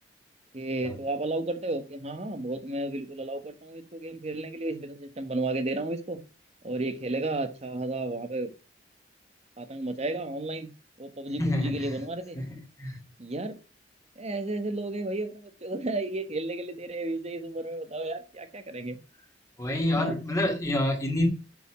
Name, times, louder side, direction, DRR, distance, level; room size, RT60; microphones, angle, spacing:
voice 1, 0.5-6.2 6.6-8.5 9.6-10.7 11.0-12.4 13.2-13.6 14.2-19.0 20.0-20.2, right 2 dB, 35° right, 1.3 m, -33 dB
voice 2, 11.4-12.0 12.3-13.0 19.6-21.3, left 1 dB, 20° left, 2.4 m, -28 dB
7.3 x 6.9 x 4.9 m
head